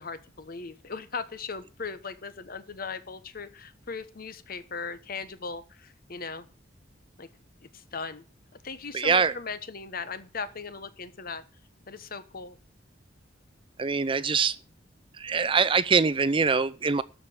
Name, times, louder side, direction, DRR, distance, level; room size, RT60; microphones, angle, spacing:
voice 1, 0.0-6.5 7.2-7.3 7.6-8.3 8.6-11.4 11.9-12.6, left 4 dB, 50° left, 1.1 m, -38 dB
voice 2, 8.9-9.3 13.8-14.6 15.2-17.0, right 5 dB, 30° right, 0.5 m, -23 dB
13.0 x 5.0 x 8.6 m
head